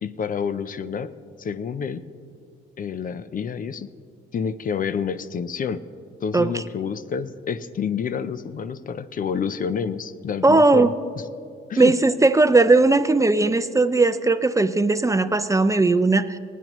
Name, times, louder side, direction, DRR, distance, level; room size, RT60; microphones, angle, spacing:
voice 1, 0.0-1.1 1.4-2.0 2.8-3.9 4.3-5.8 6.2-10.9 11.7-11.9, left 6 dB, 45° left, 14 dB, 0.5 m, -28 dB
voice 2, 10.4-10.9 11.8-16.4, right 3 dB, 15° right, 12 dB, 0.4 m, -18 dB
25.5 x 9.2 x 3.1 m, 2.3 s
cardioid pair, 90°, 20 cm